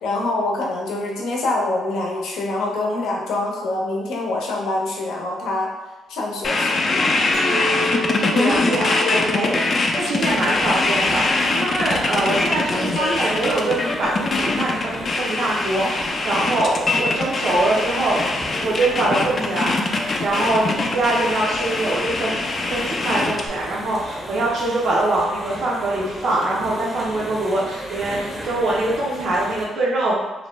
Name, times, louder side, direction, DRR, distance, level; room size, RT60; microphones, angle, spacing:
voice 1, 0.0-5.7 6.1-6.8 9.0-9.8, left 2 dB, 85° left, -2 dB, 0.6 m, -25 dB
sound 1, 6.4-23.5, left 3 dB, 40° left, 0.3 m, -22 dB
Chink clink, 7.3-12.5, equal, 80° right, 1.3 m, -32 dB
voice 2, 7.7-19.8 20.2-30.2, right 2 dB, 65° right, -5 dB, 0.5 m, -23 dB
sound 2, 10.1-29.7, equal, 5° right, 0.6 m, -35 dB
2.5 x 2.1 x 3.1 m, 1.2 s
cardioid pair, 90°, 0 cm